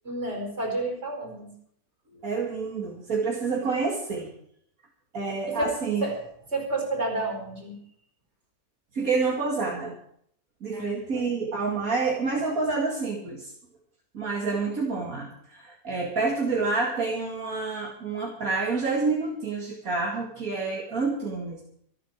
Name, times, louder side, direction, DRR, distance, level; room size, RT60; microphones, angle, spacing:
voice 1, 0.0-1.5 5.5-5.7 6.0-7.8 10.7-11.2, right 2 dB, 45° right, 2 dB, 5.2 m, -31 dB
voice 2, 2.2-4.3 5.1-6.0 8.9-9.9 10.6-13.5 14.1-21.6, right 4 dB, 70° right, -2 dB, 2.7 m, -28 dB
26.0 x 9.4 x 4.7 m, 0.66 s
omnidirectional pair, 1.6 m